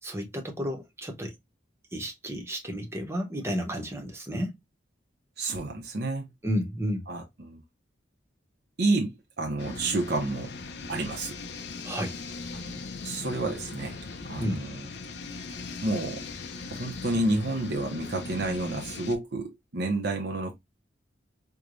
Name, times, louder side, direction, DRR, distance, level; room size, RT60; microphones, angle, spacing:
voice 1, 0.0-1.3 1.9-4.6 6.4-7.1 11.8-12.2 14.4-14.6, equal, 15° right, 0.9 m, -32 dB
voice 2, 5.4-6.3 7.1-7.6 8.8-10.5 10.9-11.4 12.5-12.6 13.0-14.0 14.3-14.8 15.8-16.3 16.7-20.5, right 2 dB, 60° right, 0.7 m, -30 dB
sound 1, 9.6-19.2, left 3 dB, 65° left, 0.6 m, -39 dB
4.7 x 2.3 x 2.5 m
head